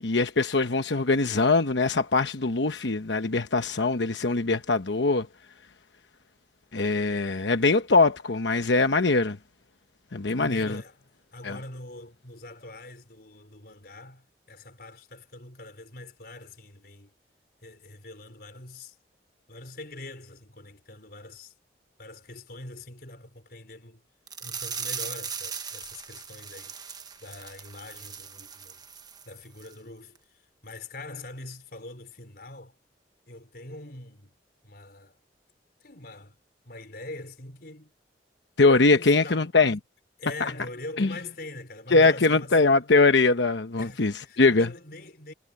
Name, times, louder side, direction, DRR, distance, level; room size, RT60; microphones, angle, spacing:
voice 1, 0.0-5.3 6.7-9.4 10.1-10.8 11.4-11.6 38.6-39.8 41.0-41.1 41.9-44.7, left 3 dB, 85° left, 1.0 m, -22 dB
voice 2, 10.3-17.1 17.6-19.0 19.5-21.5 22.0-24.1 24.4-26.8 27.2-28.8 29.3-32.8 33.3-34.4 34.6-35.2 35.8-36.4 36.7-37.9 38.9-39.5 40.2-42.6 43.8-45.3, left 2 dB, 55° left, 5.2 m, -43 dB
sound 1, 24.3-29.3 29.6-29.7 30.1-30.2, right 6 dB, 20° right, 1.2 m, -38 dB
head